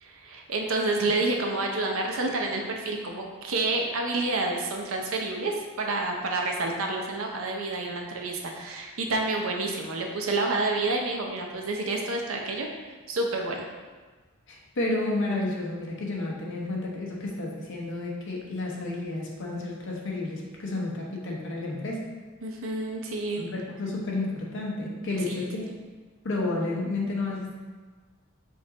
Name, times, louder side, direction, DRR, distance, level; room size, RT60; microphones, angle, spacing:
voice 1, 0.0-12.7 13.1-13.7 22.4-23.4 25.3-25.4, right 2 dB, 70° right, 1 dB, 0.7 m, -29 dB
voice 2, 14.5-22.1 23.4-25.6 26.2-27.6, left 2 dB, 60° left, -2 dB, 0.9 m, -31 dB
5.3 x 2.5 x 3.8 m, 1.4 s
head